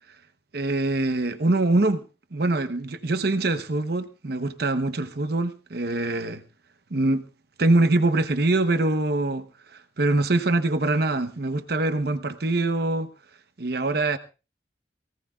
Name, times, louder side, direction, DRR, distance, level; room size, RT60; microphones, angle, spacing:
voice 1, 0.5-2.0 2.3-6.4 6.9-7.3 7.6-13.1 13.6-14.2, right 2 dB, 60° right, 0.9 m, -24 dB
23.0 x 17.0 x 2.4 m
head